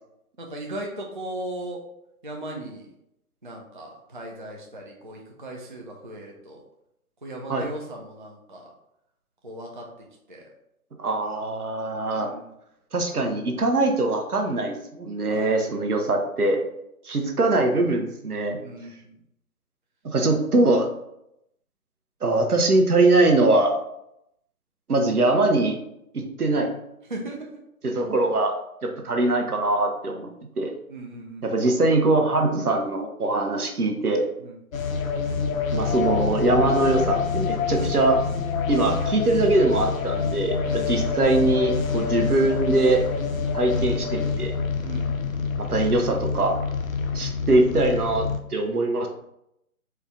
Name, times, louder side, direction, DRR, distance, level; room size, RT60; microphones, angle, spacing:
voice 1, 0.4-1.8 2.2-2.9 3.4-6.6 7.2-8.7 9.4-9.9 10.3-10.5 12.2-12.5 15.3-15.6 18.6-18.9 27.1-27.6 30.9-31.6 34.4-34.6 40.7-41.0 44.8-45.1, right 1 dB, 35° right, 0 dB, 0.4 m, -37 dB
voice 2, 11.0-12.3 12.9-16.6 17.0-18.6 20.0-20.9 22.2-23.7 24.9-25.8 26.1-26.7 27.8-28.5 28.8-30.3 30.6-30.7 31.4-34.3 35.7-38.2 38.7-43.1 43.5-44.5 45.6-46.6 47.1-48.3 48.5-49.1, right 2 dB, 80° right, 3 dB, 0.9 m, -22 dB
sound 1, 34.7-48.4, left 5 dB, 65° left, 0.6 m, -26 dB
4.4 x 2.2 x 3.6 m, 0.80 s
figure-of-eight pair, 135°, 44 cm